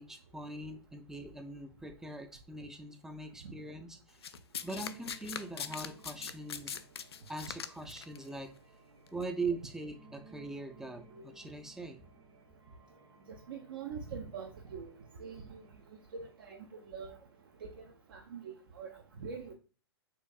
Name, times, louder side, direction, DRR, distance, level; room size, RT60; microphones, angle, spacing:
voice 1, 0.0-4.2 4.6-6.8 7.3-8.5 9.1-12.0, right 3 dB, 5° right, 7 dB, 0.4 m, -41 dB
Domestic sounds home sounds, 4.2-8.2 9.1-9.2, left 7 dB, 70° left, 0.4 m, -41 dB
sound 1, 4.5-17.8, right 3 dB, 75° right, 1.2 m, -60 dB
voice 2, 13.5-14.9 15.2-15.6 16.1-16.6 16.9-17.1 18.1-19.5, right 6 dB, 55° right, 3 dB, 0.6 m, -43 dB
6.5 x 2.6 x 2.3 m, 0.36 s
figure-of-eight pair, 110°, 14 cm